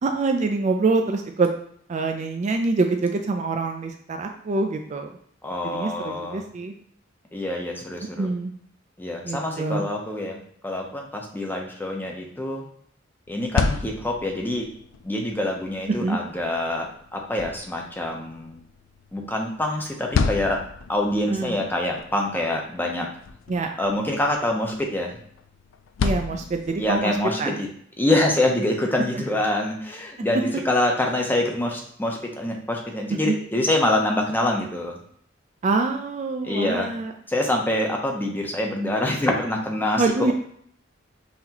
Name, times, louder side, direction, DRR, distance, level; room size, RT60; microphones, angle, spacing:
voice 1, 0.0-1.5 1.9-5.1 5.7-6.7 8.2-8.5 9.2-9.8 16.0-16.2 21.3-21.6 23.5-23.7 26.0-27.1 27.4-27.5 33.2-33.3 35.6-37.1 40.0-40.3, right 3 dB, 40° right, 4 dB, 0.4 m, -25 dB
voice 2, 5.4-6.5 7.3-8.3 9.0-12.6 13.3-14.6 15.0-18.6 19.1-20.6 20.9-23.1 23.8-25.2 26.8-27.7 28.0-35.0 36.4-36.9 37.3-40.3, left 1 dB, 10° left, 0 dB, 0.7 m, -25 dB
sound 1, 13.3-27.2, left 4 dB, 80° left, 0.3 m, -33 dB
5.7 x 2.8 x 2.9 m, 0.63 s
head